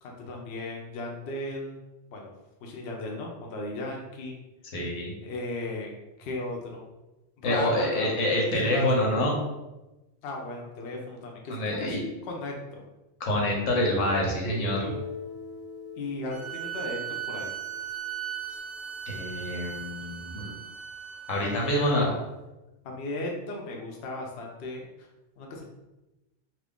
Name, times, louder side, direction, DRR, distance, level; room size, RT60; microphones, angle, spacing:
voice 1, 0.0-1.8 2.1-2.3 2.6-4.4 5.2-6.8 7.4-8.1 8.5-9.2 10.2-11.9 12.2-12.8 16.0-17.5 21.3-22.2 22.8-24.9 25.4-25.6, left 2 dB, 65° left, 0 dB, 0.8 m, -36 dB
voice 2, 4.7-5.1 7.4-9.3 11.5-12.0 13.2-14.9 19.1-20.5 21.3-22.1, left 1 dB, 85° left, -1 dB, 1.2 m, -26 dB
Guitar, 14.4-18.3, left 3 dB, 5° right, 0.5 m, -41 dB
sound 1, 16.3-22.0, right 9 dB, 55° right, 0.7 m, -38 dB
2.9 x 2.5 x 3.5 m, 1.0 s
omnidirectional pair, 1.3 m